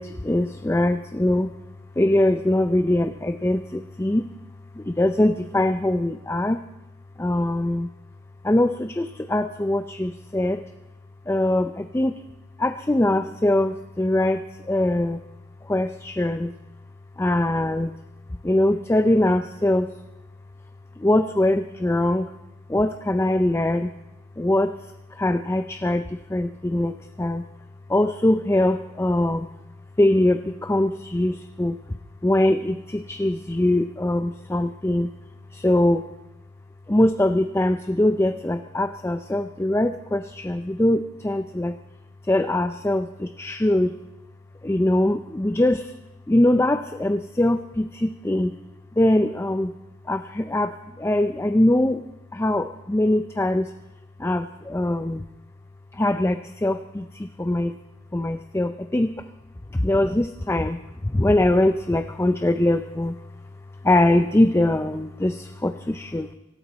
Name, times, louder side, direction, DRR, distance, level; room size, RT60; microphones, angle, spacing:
voice 1, 0.0-1.5 2.0-4.3 4.8-6.6 7.2-7.9 8.4-10.6 11.3-12.2 12.6-15.2 15.6-16.5 17.2-18.0 18.4-19.9 21.0-22.3 22.7-23.9 24.4-24.8 25.1-27.4 27.9-29.5 30.0-31.8 32.2-35.1 35.5-36.1 36.9-41.8 42.3-43.9 44.6-45.9 46.3-48.5 49.0-49.7 50.1-52.0 52.3-53.7 54.2-55.2 55.9-57.7 58.1-59.2 59.7-63.2 63.8-66.3, left 1 dB, 15° left, 9 dB, 0.4 m, -22 dB
24.0 x 13.0 x 4.1 m, 0.97 s
head